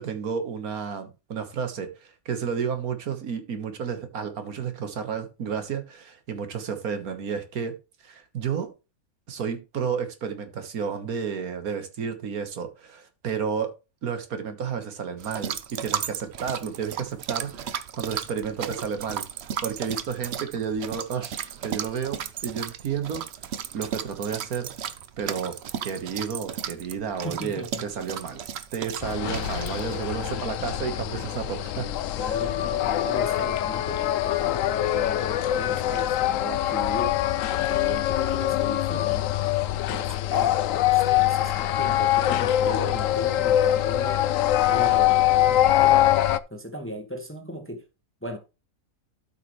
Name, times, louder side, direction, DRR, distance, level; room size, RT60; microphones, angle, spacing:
voice 1, 0.0-7.7 8.0-8.7 9.3-13.7 14.0-19.3 19.6-23.2 23.7-24.7 25.2-25.6 25.8-28.4 28.7-31.9, right 6 dB, 80° right, 1.7 m, -31 dB
sound 1, 15.2-30.1, right 8 dB, 55° right, 0.8 m, -35 dB
voice 2, 27.2-27.8 30.1-30.7 32.2-37.1 37.5-39.4 39.9-44.2 44.7-46.1 46.5-47.8 48.2-48.4, equal, 10° left, 1.0 m, -37 dB
sound 2, 29.0-46.4, left 13 dB, 70° left, 0.9 m, -23 dB
12.5 x 5.8 x 3.1 m
omnidirectional pair, 1.5 m